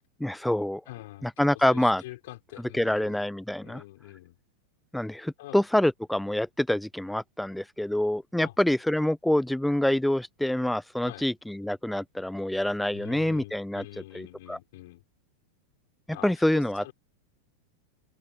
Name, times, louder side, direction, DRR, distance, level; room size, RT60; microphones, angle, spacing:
voice 1, 0.2-0.8 1.2-2.0 2.8-3.8 4.9-13.8 14.1-14.6 16.2-16.8, left 1 dB, 5° left, 0.6 m, -26 dB
voice 2, 0.9-3.2 3.6-4.4 5.4-5.6 8.4-8.5 11.0-11.3 12.9-15.0 16.1-16.9, left 18 dB, 50° left, 5.1 m, -45 dB
open air
figure-of-eight pair, 90°, 0 cm